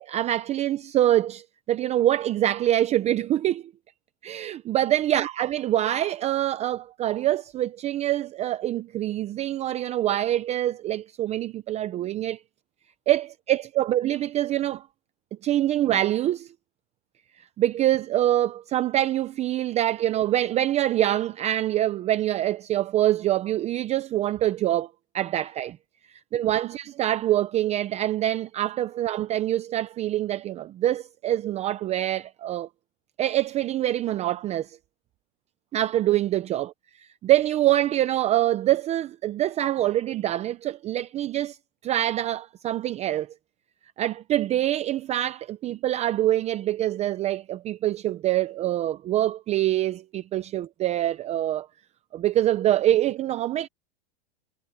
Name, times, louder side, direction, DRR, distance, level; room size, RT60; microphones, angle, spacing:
voice 1, 0.0-3.6 4.2-12.4 13.1-14.8 15.4-16.5 17.4-24.9 25.1-25.8 26.3-32.7 33.2-34.8 35.7-36.7 37.2-41.6 41.8-43.3 44.0-51.7 52.1-53.7, right 13 dB, 20° right, 0.6 m, -25 dB
supercardioid pair, 145°, 29 cm